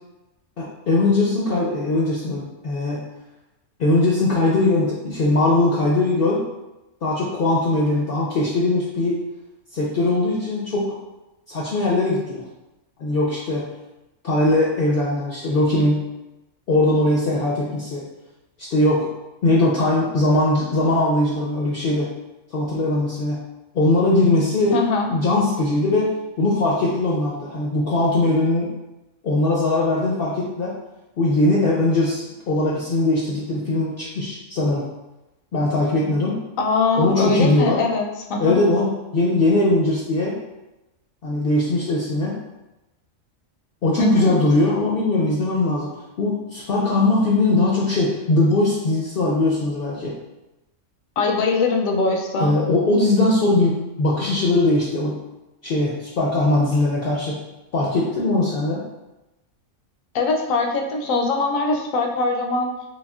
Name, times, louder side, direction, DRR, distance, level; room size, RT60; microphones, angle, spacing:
voice 1, 0.6-3.1 3.8-6.4 7.0-9.2 9.7-10.9 11.5-12.4 13.0-13.6 14.2-16.0 16.7-18.0 18.6-19.1 19.4-22.1 22.5-23.4 23.7-24.8 25.1-26.1 26.4-28.7 29.2-30.7 31.2-34.9 35.5-36.4 37.0-37.8 38.4-40.4 41.2-42.4 43.8-45.9 46.2-50.1 52.4-55.2 55.6-57.4 57.7-58.8, left 2 dB, 60° left, -5 dB, 0.6 m, -20 dB
voice 2, 24.7-25.1 36.6-38.6 44.0-44.3 51.2-52.5 60.1-62.7, left 3 dB, 80° left, 2 dB, 1.0 m, -22 dB
4.2 x 3.1 x 2.3 m, 1.0 s
omnidirectional pair, 1.4 m